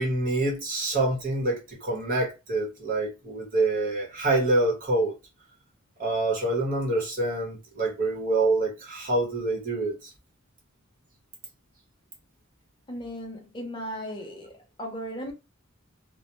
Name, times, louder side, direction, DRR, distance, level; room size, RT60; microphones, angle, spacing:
voice 1, 0.0-5.1 6.0-10.1, right 2 dB, 45° right, 1.0 m, -26 dB
voice 2, 12.9-15.3, equal, 25° left, 0.6 m, -36 dB
2.2 x 2.1 x 2.8 m
head